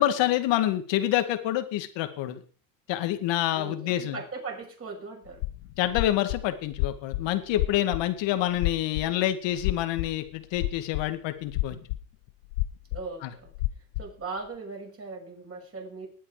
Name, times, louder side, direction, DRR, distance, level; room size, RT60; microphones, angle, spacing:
voice 1, 0.0-2.4 2.9-4.2 5.8-11.8 13.2-13.3, left 13 dB, 65° left, 9 dB, 2.2 m, -27 dB
voice 2, 3.5-5.4 12.9-13.5 14.0-16.1, right 4 dB, 30° right, 0 dB, 6.5 m, -39 dB
sound 1, 5.3-6.4 6.7-7.3 7.5-8.1 8.5-9.1 9.6-10.3 10.5-11.1 11.5-12.0 12.3-13.0 13.5-14.1, left 18 dB, 80° left, 0.9 m, -29 dB
20.0 x 8.7 x 5.0 m, 0.43 s
supercardioid pair, 95°, 47 cm